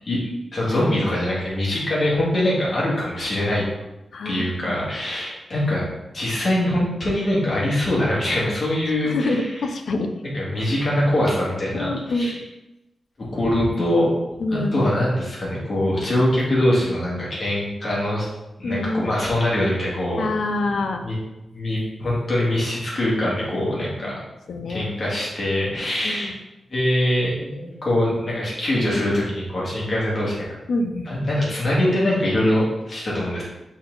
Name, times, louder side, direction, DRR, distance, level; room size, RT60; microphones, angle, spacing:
voice 1, 0.5-3.6 4.2-5.9 6.1-9.4 10.2-12.4 13.3-14.1 14.5-18.3 18.6-20.2 21.0-21.2 21.5-24.1 24.7-26.3 26.7-30.4 31.1-33.4, left 1 dB, 35° left, -6 dB, 2.0 m, -23 dB
voice 2, 4.1-4.8 9.0-10.1 11.7-12.4 14.4-14.9 18.6-19.2 20.2-21.0 24.0-24.1 24.5-24.9 26.0-26.3 30.7-31.1, left 2 dB, 65° left, 5 dB, 0.6 m, -26 dB
5.7 x 4.1 x 3.9 m, 0.98 s
wide cardioid pair, 165°, 0 cm